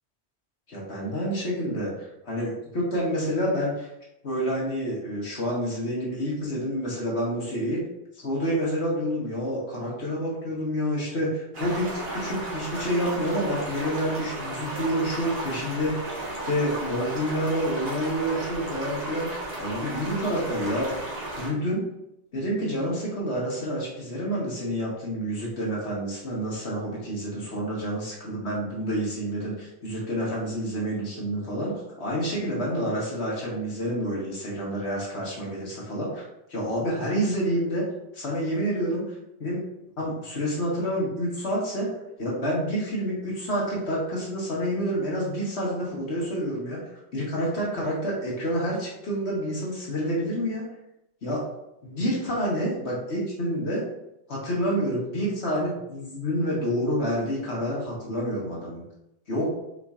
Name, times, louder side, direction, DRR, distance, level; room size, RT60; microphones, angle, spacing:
voice 1, 0.7-3.9 4.2-7.8 8.1-15.9 16.4-19.3 19.6-20.9 21.3-21.8 22.3-31.7 32.0-36.2 36.5-37.8 38.1-41.9 42.2-46.8 47.1-50.6 51.2-51.4 51.8-53.8 54.3-58.8 59.3-59.5, equal, 60° left, -5 dB, 1.5 m, -28 dB
sound 1, 11.5-21.5, right 2 dB, 55° right, 1.5 m, -34 dB
4.9 x 4.1 x 2.4 m, 0.84 s
omnidirectional pair, 1.2 m